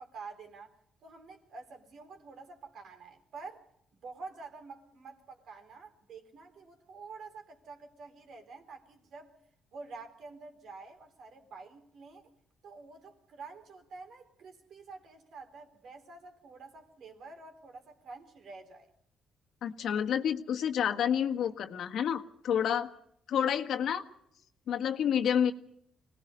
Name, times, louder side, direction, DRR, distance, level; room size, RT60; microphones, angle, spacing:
voice 1, 0.0-3.7 4.0-9.3 9.7-12.2 12.6-18.9, right 4 dB, 65° right, 4.2 m, -48 dB
voice 2, 19.6-22.9 23.3-24.0 24.7-25.5, left 8 dB, 70° left, 1.6 m, -29 dB
25.5 x 19.0 x 5.5 m
cardioid pair, 90°, 0 cm